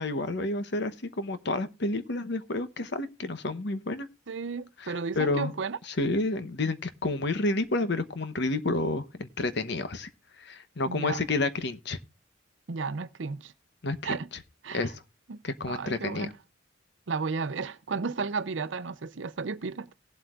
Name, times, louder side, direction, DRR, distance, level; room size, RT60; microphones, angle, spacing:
voice 1, 0.0-4.1 4.8-5.5 5.9-10.1 10.4-12.0 13.8-14.2 14.7-15.0 15.4-16.3, left 2 dB, 60° left, 1.0 m, -30 dB
voice 2, 4.3-5.8 10.9-11.2 12.7-13.5 14.0-14.3 14.6-14.9 15.3-15.4 15.7-16.3 17.1-19.9, right 4 dB, 70° right, 0.6 m, -33 dB
18.5 x 7.9 x 2.4 m
head